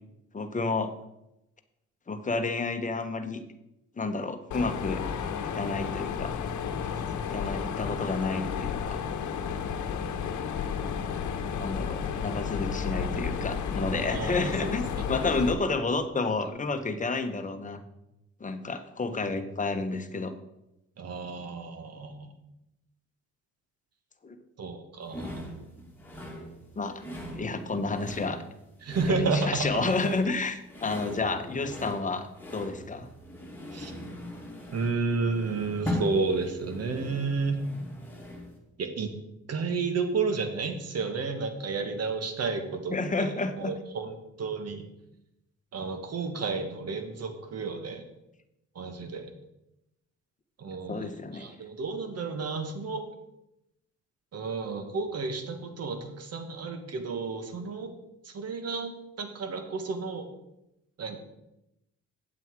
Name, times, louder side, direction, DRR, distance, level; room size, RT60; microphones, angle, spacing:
voice 1, 0.3-0.9 2.1-3.4 4.0-5.0 5.5-6.3 7.2-9.0 11.6-17.8 18.4-20.3 24.2-24.3 26.8-27.0 27.3-28.4 29.1-33.1 42.9-43.7 50.9-51.6, left 3 dB, 25° left, 8 dB, 1.1 m, -30 dB
Mechanisms, 4.5-15.5, left 7 dB, 75° left, 1.1 m, -32 dB
voice 2, 14.1-15.0 15.5-15.8 21.0-22.3 24.6-25.4 28.8-29.8 33.7-33.9 34.7-37.6 38.8-39.1 39.5-44.9 45.7-48.0 48.8-49.3 50.6-53.0 54.3-57.9 58.3-58.9 59.2-60.3 61.0-61.2, right 4 dB, 55° right, 7 dB, 1.6 m, -32 dB
sound 1, 25.1-38.6, left 1 dB, 5° left, 2.3 m, -40 dB
8.6 x 7.7 x 4.7 m, 0.88 s
cardioid pair, 90°, 30 cm